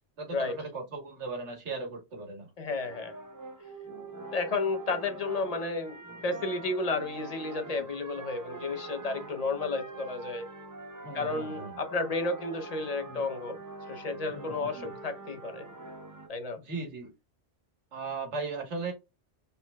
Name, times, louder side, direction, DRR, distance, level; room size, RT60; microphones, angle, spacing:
voice 1, 0.2-2.5 7.7-7.9 11.0-11.8 13.0-13.2 14.3-14.9 16.6-17.1 17.9-18.9, right 3 dB, 75° right, 1.6 m, -38 dB
voice 2, 2.6-3.1 4.3-10.5 11.1-13.6 13.9-15.7 16.3-16.6, left 3 dB, 40° left, 0.7 m, -32 dB
sound 1, 2.8-16.3, right 3 dB, 25° right, 0.5 m, -44 dB
4.2 x 4.0 x 2.3 m
omnidirectional pair, 1.2 m